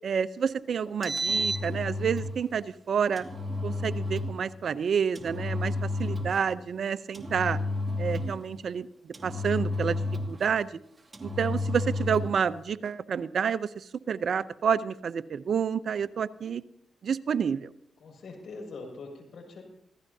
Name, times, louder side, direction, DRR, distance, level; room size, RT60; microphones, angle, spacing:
voice 1, 0.0-3.2 3.6-7.6 8.0-10.0 10.3-10.8 11.2-16.6 17.0-17.7, right 7 dB, 65° right, 14 dB, 0.7 m, -29 dB
Engine, 0.9-2.3 3.2-4.3 5.1-6.4 7.1-8.4 9.1-10.5 11.1-12.4, left 2 dB, 30° right, 2.5 m, -31 dB
voice 2, 18.0-19.6, left 3 dB, 65° left, 2 dB, 6.3 m, -43 dB
26.0 x 16.5 x 2.8 m, 0.71 s
supercardioid pair, 55°, 0 cm